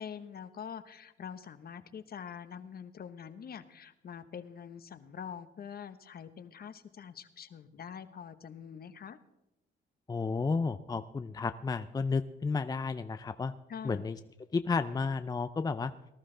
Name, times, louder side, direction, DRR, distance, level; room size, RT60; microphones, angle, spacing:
voice 1, 0.0-9.2 13.7-14.1, left 7 dB, 50° left, 12 dB, 1.0 m, -45 dB
voice 2, 10.1-13.5 13.8-14.2 14.5-15.9, left 4 dB, 20° left, 10 dB, 0.5 m, -32 dB
19.0 x 12.0 x 3.8 m, 0.91 s
cardioid pair, 90°, 20 cm